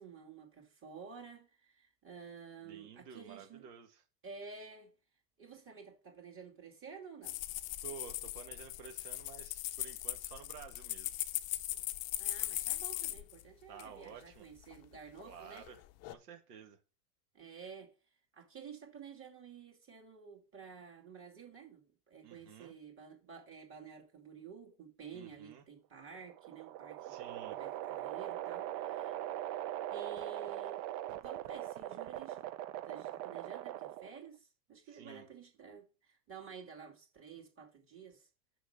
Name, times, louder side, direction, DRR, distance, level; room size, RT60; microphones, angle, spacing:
voice 1, 0.0-3.6 4.2-4.9 5.4-7.4 12.2-15.7 17.3-17.9 18.3-27.2 27.5-29.2 29.9-30.8 31.2-32.4 32.8-38.3, right 6 dB, 25° right, 2.6 m, -51 dB
voice 2, 2.6-4.0 7.8-11.2 13.7-14.5 15.2-15.8 16.1-16.8 22.2-22.7 25.1-25.6 27.0-27.6 34.8-35.3, right 7 dB, 75° right, 1.9 m, -52 dB
sound 1, 7.2-13.4 13.8-13.9 14.7-15.2 15.6-16.1, left 16 dB, 35° left, 0.6 m, -39 dB
sound 2, 26.0-34.3, right 13 dB, 50° right, 0.8 m, -41 dB
6.3 x 5.8 x 6.6 m
hypercardioid pair, 115°, 47 cm